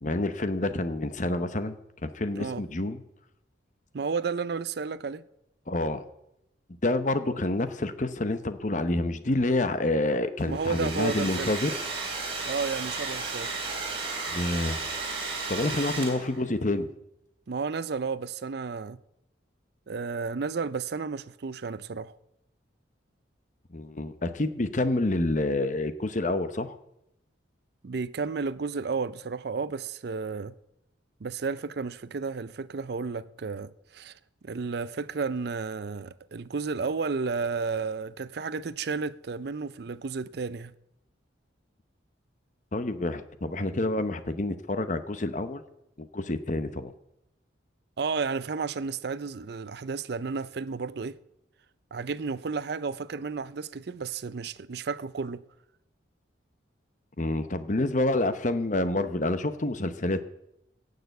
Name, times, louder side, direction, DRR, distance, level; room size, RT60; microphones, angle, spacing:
voice 1, 0.0-3.0 5.7-6.0 6.8-11.8 14.3-14.8 15.5-16.9 23.7-26.8 42.7-45.6 46.0-46.9 57.2-60.2, left 2 dB, 40° left, 0.8 m, -28 dB
voice 2, 3.9-5.2 10.5-11.5 12.4-13.5 17.5-19.0 19.9-22.2 27.8-30.5 31.2-34.1 34.4-40.7 48.0-51.2 51.9-55.4, right 4 dB, 55° right, 0.5 m, -32 dB
Domestic sounds home sounds, 10.4-16.5, right 3 dB, 30° right, 3.6 m, -34 dB
17.0 x 6.7 x 8.1 m
head